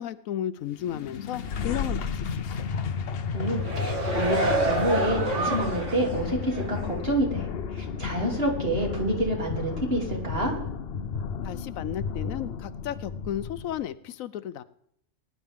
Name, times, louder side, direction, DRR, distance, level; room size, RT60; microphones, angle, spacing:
voice 1, 0.0-2.8 11.4-14.6, left 11 dB, 90° left, 15 dB, 1.1 m, -34 dB
sound 1, 0.7-13.8, left 6 dB, 55° left, 0.9 m, -33 dB
voice 2, 3.3-10.5, right 1 dB, 45° right, -1 dB, 3.2 m, -28 dB
sound 2, 3.4-6.1 6.5-6.7, right 2 dB, 65° right, 2.3 m, -28 dB
19.5 x 11.0 x 3.6 m, 0.70 s
omnidirectional pair, 1.4 m